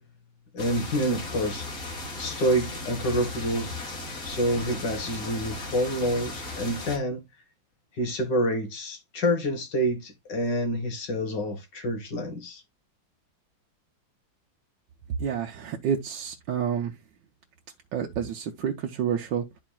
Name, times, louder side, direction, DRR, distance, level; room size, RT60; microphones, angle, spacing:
voice 1, 0.5-1.7 2.2-3.7 4.2-7.2 8.0-12.6, equal, 65° left, 2.2 m, -27 dB
sound 1, 0.6-7.0, left 2 dB, 45° left, 2.3 m, -36 dB
voice 2, 15.2-16.9 17.9-19.5, right 8 dB, 70° right, 1.4 m, -29 dB
12.0 x 4.3 x 2.2 m
omnidirectional pair, 2.1 m